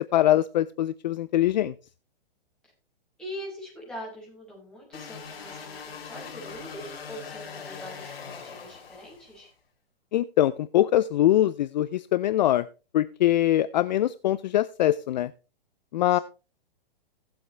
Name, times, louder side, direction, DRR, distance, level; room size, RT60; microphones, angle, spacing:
voice 1, 0.1-1.7 10.1-12.7 12.9-15.3 15.9-16.2, left 13 dB, 50° left, 16 dB, 0.4 m, -23 dB
voice 2, 3.2-9.5 16.1-16.2, equal, 5° left, -5 dB, 5.6 m, -42 dB
sound 1, 4.9-9.5, left 6 dB, 90° left, 2.6 m, -41 dB
16.0 x 7.8 x 3.3 m, 0.33 s
hypercardioid pair, 155°, 29 cm